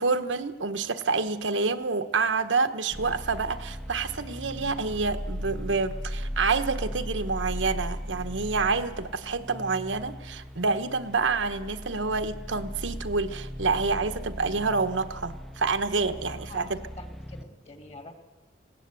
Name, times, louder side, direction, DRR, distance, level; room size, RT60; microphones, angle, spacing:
voice 1, 0.0-16.8, right 4 dB, 90° right, 9 dB, 1.1 m, -28 dB
sound 1, 2.9-17.5, equal, ahead, 0.6 m, -37 dB
voice 2, 16.3-18.1, left 1 dB, 35° left, 5 dB, 2.4 m, -46 dB
20.0 x 17.0 x 8.3 m, 1.3 s
head